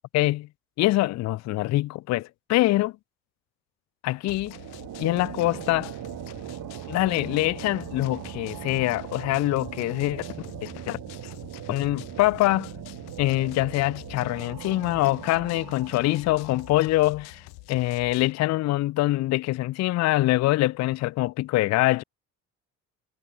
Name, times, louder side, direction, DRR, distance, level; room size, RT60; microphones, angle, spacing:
voice 1, 0.1-0.5 0.8-2.9 4.0-4.5 5.0-5.9 6.9-10.2 10.6-11.0 11.7-12.7 13.2-17.4 17.7-22.0, left 18 dB, 45° left, 0.5 m, -24 dB
sound 1, 4.3-18.3, left 24 dB, 70° left, 4.3 m, -47 dB
sound 2, 4.3-17.5, right 13 dB, 55° right, 3.6 m, -40 dB
figure-of-eight pair, 50°, 40 cm